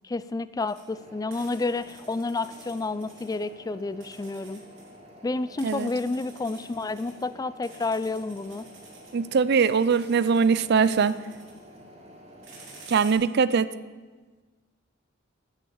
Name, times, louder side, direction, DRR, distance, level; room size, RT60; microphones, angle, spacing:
voice 1, 0.0-4.6 5.2-8.6, left 3 dB, 20° left, 15 dB, 0.3 m, -30 dB
sound 1, 0.6-0.8 1.3-3.5 4.0-4.9 5.6-7.2 7.6-9.1 9.6-11.8 12.3-13.1, right 3 dB, 70° right, 3.0 m, -51 dB
sound 2, 0.9-12.9, equal, 30° right, 2.1 m, -50 dB
voice 2, 9.1-11.1 12.9-13.7, right 5 dB, 55° right, 16 dB, 0.4 m, -22 dB
9.9 x 9.6 x 7.0 m, 1.4 s
head